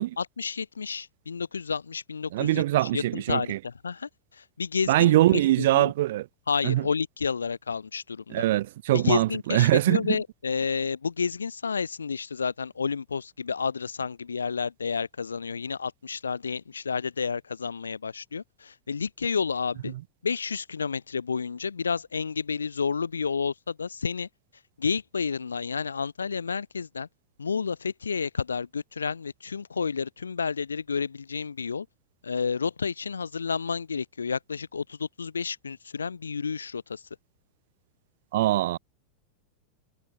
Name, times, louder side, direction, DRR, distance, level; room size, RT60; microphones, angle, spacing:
voice 1, 0.2-5.9 6.5-8.4 8.9-19.9 20.2-24.3 24.8-27.1 27.4-31.9 32.2-37.0, left 5 dB, 75° left, 0.5 m, -30 dB
voice 2, 2.3-3.6 4.9-6.3 6.6-6.8 8.3-10.2 38.3-38.8, right 15 dB, 55° right, 0.4 m, -23 dB
figure-of-eight pair, 90°, 0 cm